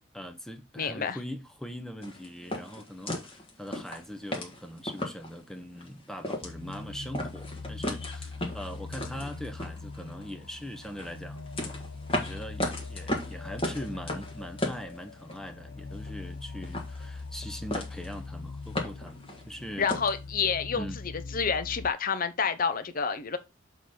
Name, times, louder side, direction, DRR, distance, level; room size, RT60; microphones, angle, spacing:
voice 1, 0.1-11.8 12.1-19.9 20.7-21.0, equal, ahead, 0.8 m, -41 dB
voice 2, 0.8-1.2 19.8-20.9 21.3-23.4, left 6 dB, 45° left, 0.7 m, -28 dB
sound 1, 2.0-5.4 5.8-5.9 6.2-6.8 7.1-10.3 10.8-15.5 15.8-16.4 16.6-17.5 17.7-18.2 18.5-20.2, left 1 dB, 25° left, 1.6 m, -35 dB
sound 2, 6.4-21.9, left 3 dB, 80° left, 0.6 m, -42 dB
7.1 x 4.2 x 3.9 m
head